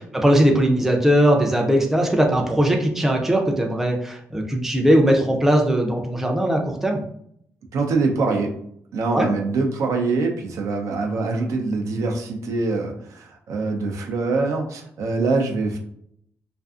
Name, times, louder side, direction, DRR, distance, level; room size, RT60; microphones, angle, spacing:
voice 1, 0.1-7.0 9.1-9.3, right 1 dB, 5° right, 2 dB, 0.4 m, -19 dB
voice 2, 7.7-8.6 8.9-15.8, right 3 dB, 75° right, 2 dB, 0.5 m, -24 dB
2.5 x 2.4 x 2.4 m, 0.68 s
cardioid pair, 105°, 5 cm